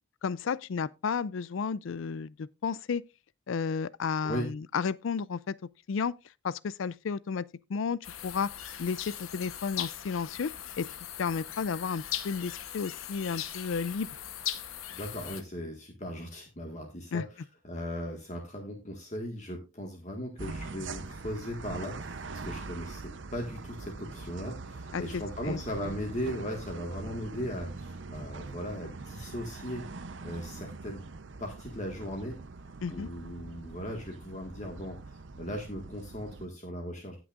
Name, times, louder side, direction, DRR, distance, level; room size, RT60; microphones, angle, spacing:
voice 1, 0.2-3.0 3.5-5.5 5.9-6.1 6.4-7.4 7.7-8.5 8.8-10.9 11.2-14.1 17.1-17.2 24.9-25.6 32.8-33.1, left 5 dB, 65° left, 0.4 m, -32 dB
sound 1, 8.0-15.4, left 11 dB, 80° left, 1.0 m, -39 dB
voice 2, 14.9-29.8 30.2-31.0 31.4-32.4 32.9-37.2, equal, 35° left, 1.7 m, -38 dB
sound 2, 20.4-36.5, right 3 dB, 60° right, 0.7 m, -43 dB
17.5 x 6.1 x 2.5 m
head